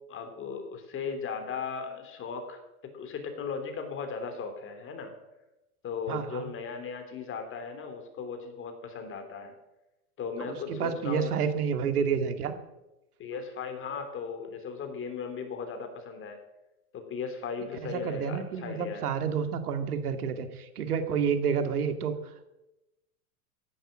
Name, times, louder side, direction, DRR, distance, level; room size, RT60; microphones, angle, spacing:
voice 1, 0.1-2.6 2.9-5.1 5.8-9.5 10.2-11.3 13.2-16.4 16.9-19.0, left 5 dB, 25° left, 6 dB, 3.3 m, -37 dB
voice 2, 6.1-6.5 10.4-12.6 17.9-22.5, right 6 dB, 80° right, 8 dB, 2.3 m, -30 dB
15.5 x 11.0 x 7.5 m, 0.97 s
hypercardioid pair, 125°, 44 cm